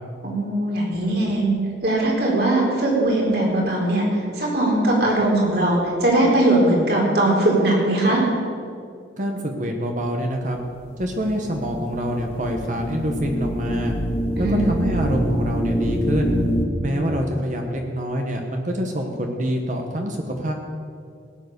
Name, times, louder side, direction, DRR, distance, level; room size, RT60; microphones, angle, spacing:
voice 1, 0.2-1.5 1.8-4.1 4.4-8.2 14.3-14.6, right 1 dB, 60° right, -2 dB, 4.1 m, -20 dB
voice 2, 9.2-10.6 11.0-13.9 14.4-16.4 16.8-20.5, equal, 45° right, 2 dB, 1.2 m, -26 dB
sound 1, 10.5-16.7, equal, 35° left, 2.0 m, -25 dB
18.0 x 9.5 x 6.7 m, 2.3 s
head